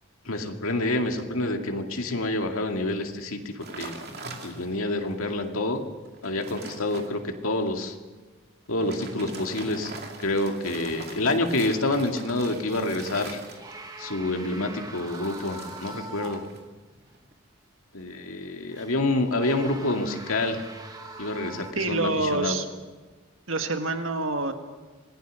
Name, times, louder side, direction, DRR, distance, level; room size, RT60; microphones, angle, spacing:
voice 1, 0.3-4.0 4.4-5.8 6.2-8.0 8.7-9.9 10.2-13.4 14.0-16.4 17.9-20.6 21.2-22.5, left 2 dB, 85° left, 4 dB, 2.2 m, -28 dB
sound 1, 3.6-4.9 5.4-5.5 6.0-7.1 8.7-13.9 14.9-16.6 16.9-17.3, right 3 dB, 50° right, 2.6 m, -42 dB
sound 2, 13.4-16.7 17.1-17.2 18.7-21.7, right 2 dB, 20° right, 1.4 m, -42 dB
voice 2, 21.7-22.6 23.5-24.5, right 3 dB, 70° right, 6 dB, 1.6 m, -26 dB
26.5 x 19.0 x 6.4 m, 1.3 s
head